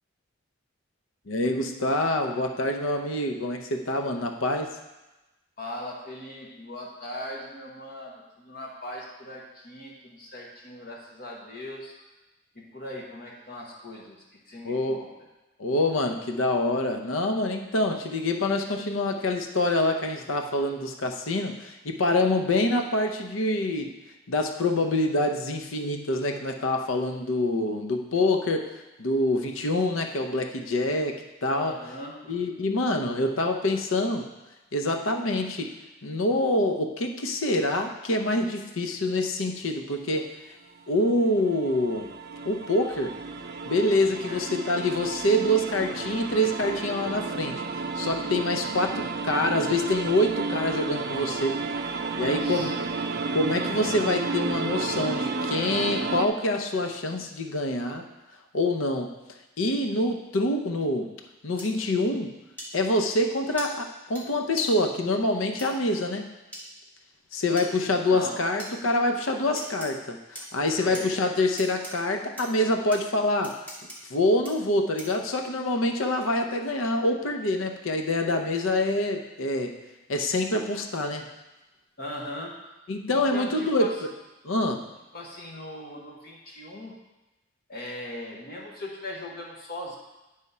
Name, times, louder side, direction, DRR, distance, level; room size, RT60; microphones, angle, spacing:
voice 1, 1.3-4.8 14.6-15.0 15.6-23.9 24.3-28.7 29.0-31.8 32.3-34.3 34.7-35.8 36.0-40.3 40.9-42.1 42.4-43.2 43.7-47.6 47.9-51.6 52.2-52.7 53.3-58.1 58.5-59.1 59.6-61.1 61.4-62.3 62.7-66.3 67.3-73.6 74.1-79.7 80.1-81.3 82.9-84.1 84.4-84.9, left 1 dB, 85° left, 4 dB, 0.7 m, -26 dB
voice 2, 5.6-11.9 12.5-14.2 14.5-15.1 31.5-32.2 44.3-44.4 52.1-52.7 67.8-68.5 70.8-71.1 82.0-82.5 83.1-83.9 85.1-86.9 87.7-90.0, left 1 dB, 45° left, -2 dB, 1.1 m, -39 dB
sound 1, 40.9-56.3, right 4 dB, 50° right, 0.4 m, -32 dB
sound 2, 61.6-61.7 62.6-62.7 63.6-63.7 64.2-64.3 64.6-64.7 65.6-65.7 66.5-66.6 67.6-67.7 68.6-68.7 69.6-69.9 70.3-71.0 71.6-71.9 72.4-72.5 72.9-73.0 73.4-74.0 74.4-74.5 75.0-75.2, right 1 dB, 10° left, 1.6 m, -39 dB
9.4 x 3.5 x 5.5 m, 1.0 s
head